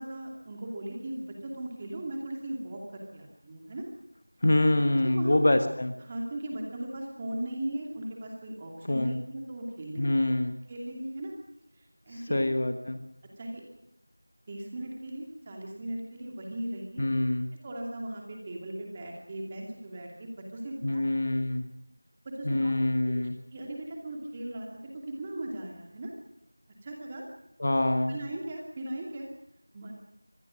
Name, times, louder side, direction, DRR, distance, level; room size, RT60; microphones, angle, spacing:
voice 1, 0.0-3.8 4.8-5.5 6.1-10.0 10.7-11.3 11.8-12.4 13.4-13.6 14.5-17.1 17.6-21.0 22.2-22.7 23.0-23.1 23.5-26.1 26.8-27.2 28.1-29.3 29.7-29.9, right 1 dB, 10° right, 0 dB, 2.6 m, -38 dB
voice 2, 4.4-5.9 8.9-9.2 10.0-10.5 12.3-13.0 17.0-17.5 20.8-21.7 22.4-23.3 27.6-28.2, left 1 dB, 30° left, 8 dB, 1.3 m, -25 dB
25.0 x 21.0 x 6.4 m, 0.83 s
figure-of-eight pair, 180°, 0 cm